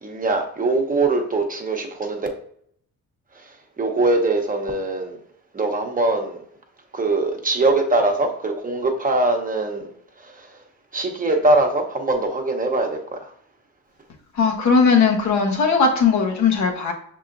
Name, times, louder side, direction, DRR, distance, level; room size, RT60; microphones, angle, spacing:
voice 1, 0.0-2.3 3.4-5.2 5.5-6.4 6.9-9.9 10.2-10.5 10.9-13.3, right 2 dB, 30° right, 3 dB, 0.9 m, -22 dB
voice 2, 14.3-16.9, left 5 dB, 65° left, 1 dB, 1.2 m, -18 dB
5.6 x 3.7 x 2.6 m, 0.63 s
cardioid pair, 90°, 30 cm